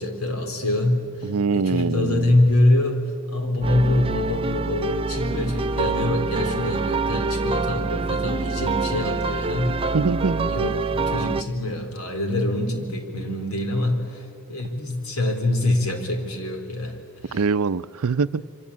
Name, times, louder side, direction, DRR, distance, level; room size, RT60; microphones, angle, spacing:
voice 1, 0.0-9.8 10.4-17.4, left 1 dB, 70° left, 5 dB, 3.8 m, -25 dB
voice 2, 1.2-2.5 9.9-10.5 17.3-18.4, right 4 dB, 70° right, 15 dB, 0.6 m, -23 dB
sound 1, 3.6-11.4, right 3 dB, 25° right, 0.6 m, -26 dB
25.5 x 25.5 x 8.6 m, 2.3 s
head